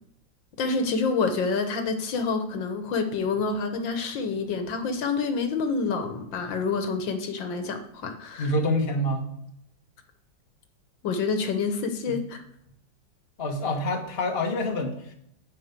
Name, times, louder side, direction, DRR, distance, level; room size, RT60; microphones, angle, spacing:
voice 1, 0.6-8.5 11.0-12.4, left 4 dB, 80° left, 6 dB, 1.8 m, -27 dB
voice 2, 8.4-9.2 12.1-12.2 13.4-15.1, left 1 dB, 35° left, 2 dB, 1.6 m, -27 dB
12.5 x 4.4 x 8.1 m, 0.75 s
omnidirectional pair, 2.0 m